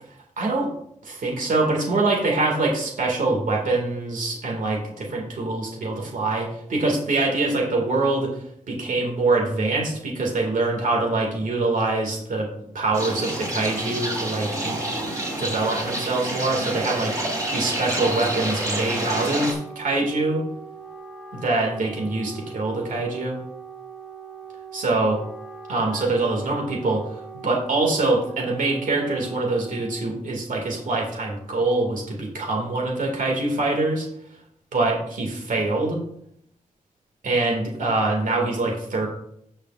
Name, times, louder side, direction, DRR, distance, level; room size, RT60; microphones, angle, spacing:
voice 1, 0.4-0.7 1.0-12.5 12.7-15.1 15.4-20.5 21.3-23.4 24.7-25.2 25.7-34.1 34.7-36.0 37.2-39.1, right 2 dB, 80° right, 0 dB, 2.0 m, -24 dB
Wind instrument woodwind instrument, 12.9-30.2, right 4 dB, 5° right, 1.5 m, -41 dB
sound 1, 12.9-19.5, right 1 dB, 25° right, 2.9 m, -28 dB
14.0 x 6.6 x 2.5 m, 0.72 s
wide cardioid pair, 125°, 13 cm